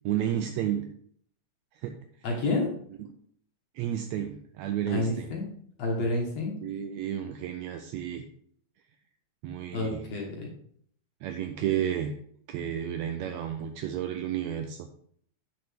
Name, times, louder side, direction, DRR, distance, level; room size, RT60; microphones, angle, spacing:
voice 1, 0.0-0.9 1.7-2.0 3.0-3.1 3.7-5.4 6.6-8.2 9.4-10.0 11.2-12.1 12.5-14.9, right 10 dB, 80° right, 6 dB, 1.6 m, -31 dB
voice 2, 2.2-2.7 4.9-5.5 5.8-6.5 9.7-10.5, left 2 dB, 60° left, -1 dB, 2.4 m, -29 dB
8.7 x 6.6 x 3.6 m, 0.63 s
omnidirectional pair, 3.7 m